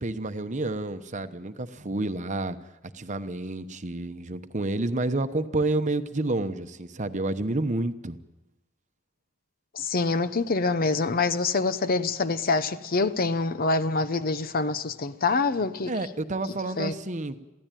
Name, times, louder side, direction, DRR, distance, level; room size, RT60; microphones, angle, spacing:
voice 1, 0.0-2.6 2.9-8.2 15.9-17.4, right 2 dB, 35° right, 1.0 m, -29 dB
voice 2, 9.7-15.9 16.8-16.9, left 3 dB, 45° left, 0.8 m, -25 dB
23.0 x 16.0 x 9.1 m
head